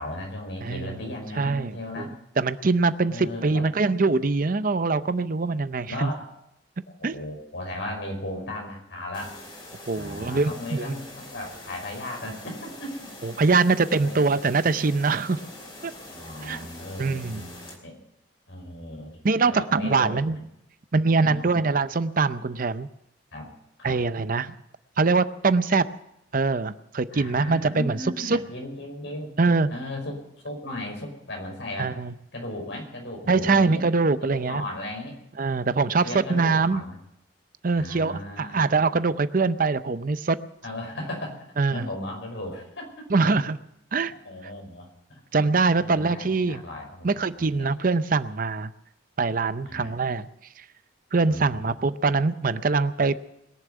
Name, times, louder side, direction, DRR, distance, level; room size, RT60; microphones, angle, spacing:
voice 1, 0.0-2.1 3.1-3.8 5.8-6.2 7.0-9.4 9.9-13.1 14.0-14.2 16.1-18.0 18.5-20.4 21.2-21.7 23.3-23.5 23.8-24.0 27.1-29.3 29.7-30.2 30.4-31.9 32.3-33.8 34.2-35.2 36.0-37.0 37.7-38.9 40.6-43.1 44.0-45.2 45.8-47.7 49.6-50.0 51.3-51.7, left 1 dB, 70° left, 1 dB, 5.2 m, -36 dB
voice 2, 0.6-1.0 1.4-2.1 2.4-6.1 7.0-7.1 9.9-11.0 13.2-15.4 15.8-15.9 16.4-16.7 17.0-17.4 19.2-20.4 20.9-22.9 23.8-24.5 25.0-25.8 26.3-28.4 29.4-29.7 31.8-32.1 33.3-34.6 35.4-36.8 37.6-40.4 41.6-41.9 43.1-43.6 43.9-44.1 45.3-46.6 47.0-48.7 49.2-50.3 51.1-53.2, right 4 dB, 45° right, 13 dB, 0.6 m, -23 dB
sound 1, 9.1-17.7, left 1 dB, 25° left, 3.6 m, -44 dB
21.0 x 7.3 x 9.4 m, 0.80 s
head